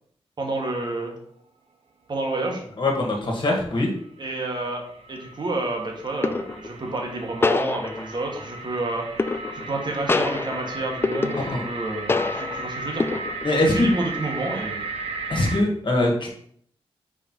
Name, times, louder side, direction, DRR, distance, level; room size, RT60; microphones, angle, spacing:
voice 1, 0.4-1.1 2.1-2.6 4.2-4.8 5.1-9.1 9.5-13.2 13.5-14.8, right 2 dB, 45° right, 1 dB, 1.6 m, -29 dB
voice 2, 2.8-3.9 11.4-11.6 13.4-13.9 15.3-16.3, left 1 dB, 50° left, 0 dB, 1.7 m, -22 dB
sound 1, 4.0-15.6, right 2 dB, 70° right, 0.9 m, -35 dB
sound 2, 4.6-4.9 6.2-6.7 7.4-8.3 9.2-9.8 10.1-11.8 12.1-12.7 13.0-13.6, left 3 dB, 20° left, 0.3 m, -26 dB
4.9 x 4.3 x 4.5 m, 0.63 s
cardioid pair, 75°, 10 cm